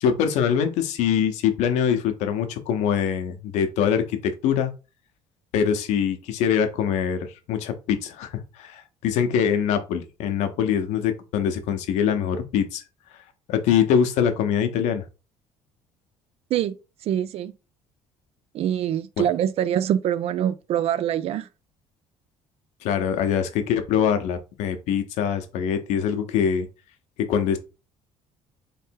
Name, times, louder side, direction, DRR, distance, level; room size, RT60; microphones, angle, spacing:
voice 1, 0.0-4.7 5.5-7.2 7.5-8.3 8.6-12.8 13.5-15.0 19.2-19.3 22.8-26.7 27.3-27.6, left 8 dB, 80° left, 0.8 m, -23 dB
voice 2, 17.1-17.5 18.5-21.5, right 10 dB, 60° right, 0.4 m, -24 dB
3.4 x 3.1 x 4.5 m
cardioid pair, 110°, 12 cm